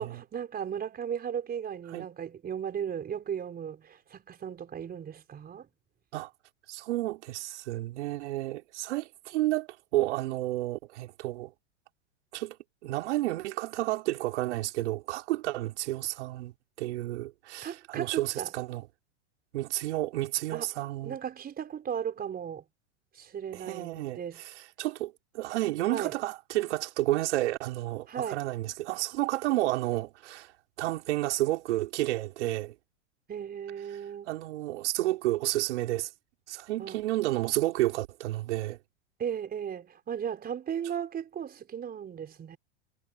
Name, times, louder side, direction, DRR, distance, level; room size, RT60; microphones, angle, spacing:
voice 1, 0.0-5.7 17.6-18.5 20.5-20.7 21.0-22.6 23.1-24.4 25.9-26.1 28.1-28.4 33.3-34.3 36.8-37.0 39.2-42.6, right 8 dB, 25° right, 4.5 m, -36 dB
voice 2, 6.7-11.5 12.3-12.6 12.8-16.5 16.8-18.8 19.5-21.2 23.5-30.5 30.8-32.7 34.3-36.1 36.5-38.8, right 16 dB, 65° right, 5.2 m, -31 dB
hypercardioid pair, 110°, 37 cm